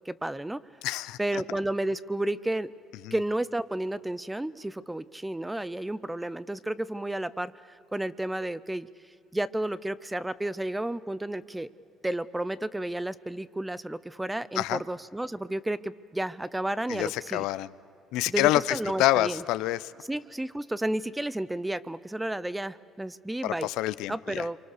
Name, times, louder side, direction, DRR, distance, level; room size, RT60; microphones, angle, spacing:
voice 1, 0.1-0.6 1.2-2.7 3.1-8.9 9.3-11.7 12.0-17.5 18.3-19.4 20.1-23.7 24.1-24.6, right 1 dB, 10° right, 17 dB, 0.5 m, -32 dB
voice 2, 0.8-1.4 3.0-3.1 14.6-14.8 16.9-17.7 18.1-19.9 23.4-24.4, left 16 dB, 85° left, 17 dB, 0.6 m, -27 dB
27.5 x 24.5 x 6.6 m, 2.7 s
cardioid pair, 110°, 0 cm